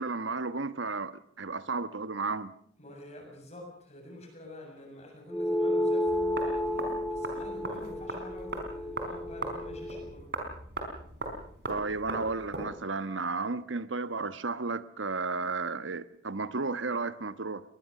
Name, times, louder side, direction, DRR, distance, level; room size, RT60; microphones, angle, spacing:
voice 1, 0.0-2.5 11.7-17.6, right 3 dB, 80° right, 1.2 m, -33 dB
voice 2, 2.8-10.3, left 1 dB, 35° left, 7.3 m, -47 dB
sound 1, 5.3-10.1, left 1 dB, 5° left, 2.4 m, -31 dB
sound 2, 6.1-12.7, right 2 dB, 55° right, 4.7 m, -39 dB
23.0 x 20.0 x 6.6 m
head